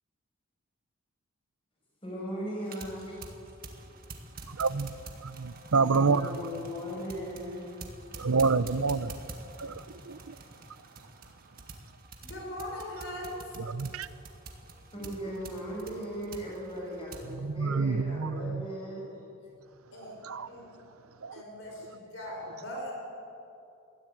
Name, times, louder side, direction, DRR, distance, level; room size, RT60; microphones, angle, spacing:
voice 1, 2.0-3.2 3.9-4.0 5.7-7.8 8.2-8.3 9.8-9.9 10.3-10.4 14.9-19.5, equal, 25° left, -3 dB, 7.1 m, -38 dB
sound 1, 2.6-17.3, right 3 dB, 40° right, 1.9 m, -47 dB
voice 2, 4.5-4.9 5.2-6.4 8.2-9.1 9.6-10.4 13.6-14.1 17.3-18.7 20.1-20.5 21.2-21.4, right 4 dB, 80° right, 15 dB, 0.7 m, -28 dB
voice 3, 12.2-13.5 19.9-20.1 20.5-20.7 21.3-22.9, left 1 dB, 55° left, -1 dB, 5.7 m, -40 dB
21.0 x 14.5 x 9.3 m, 2.7 s
head